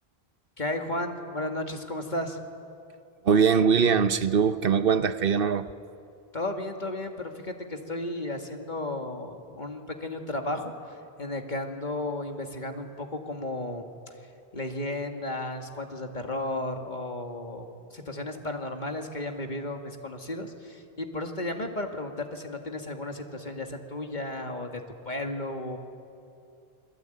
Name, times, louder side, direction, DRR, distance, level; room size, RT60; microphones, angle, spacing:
voice 1, 0.6-2.4 6.3-14.1 14.5-25.8, left 1 dB, 50° left, 2.3 m, -34 dB
voice 2, 3.2-5.7, right 6 dB, 65° right, 1.0 m, -22 dB
28.0 x 22.5 x 9.2 m
omnidirectional pair, 1.0 m